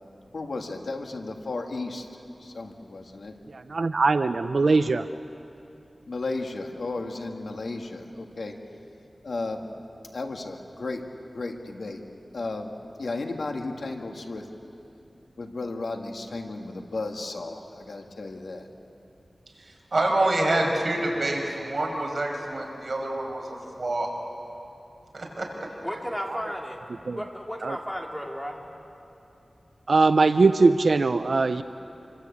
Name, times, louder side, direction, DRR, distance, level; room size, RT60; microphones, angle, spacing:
voice 1, 0.3-2.1 2.4-3.4 6.1-8.6 9.2-9.7 10.1-11.0 11.3-12.0 12.3-12.7 13.0-14.5 15.4-18.7, left 3 dB, 80° left, 3 dB, 2.2 m, -34 dB
voice 2, 3.5-5.1 27.1-27.2 27.6-27.8 29.9-31.6, right 3 dB, 70° right, 10 dB, 0.6 m, -21 dB
voice 3, 19.6-24.1 25.1-25.7, right 2 dB, 50° right, 0 dB, 5.6 m, -27 dB
voice 4, 25.8-28.7, equal, 5° left, 0 dB, 3.4 m, -34 dB
27.0 x 24.5 x 8.6 m, 2.8 s
wide cardioid pair, 90°, 0 cm